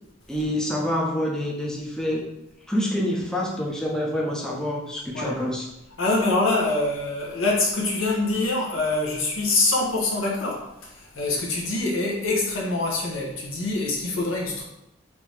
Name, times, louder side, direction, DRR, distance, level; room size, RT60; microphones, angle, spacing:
voice 1, 0.3-2.3 2.7-5.7, left 1 dB, 5° left, -3 dB, 0.5 m, -27 dB
voice 2, 6.0-14.6, left 2 dB, 90° left, -1 dB, 0.8 m, -25 dB
3.3 x 2.6 x 3.2 m, 0.88 s
head